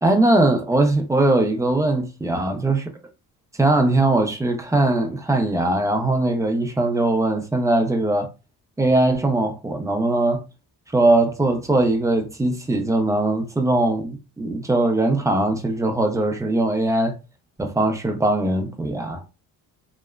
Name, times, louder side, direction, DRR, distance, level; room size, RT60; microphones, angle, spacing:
voice 1, 0.0-2.8 3.6-8.3 8.8-10.4 10.9-17.2 17.6-19.2, right 2 dB, 10° right, 0.4 m, -20 dB
2.8 x 2.2 x 2.3 m
cardioid pair, 120°, 40 cm